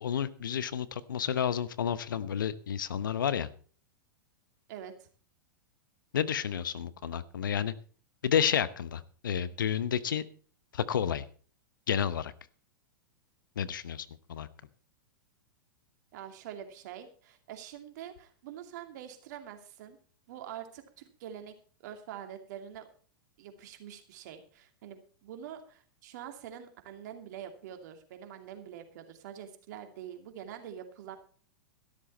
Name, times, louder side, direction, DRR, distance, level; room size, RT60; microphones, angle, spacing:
voice 1, 0.0-3.5 6.1-7.7 8.2-10.2 10.7-11.2 11.9-12.3 13.6-14.5, left 8 dB, 70° left, 16 dB, 1.0 m, -30 dB
voice 2, 4.7-5.1 16.1-20.0 20.3-21.6 21.8-22.8 23.4-31.2, right 9 dB, 55° right, 6 dB, 2.6 m, -45 dB
13.5 x 12.5 x 4.4 m, 0.43 s
figure-of-eight pair, 100°, 11 cm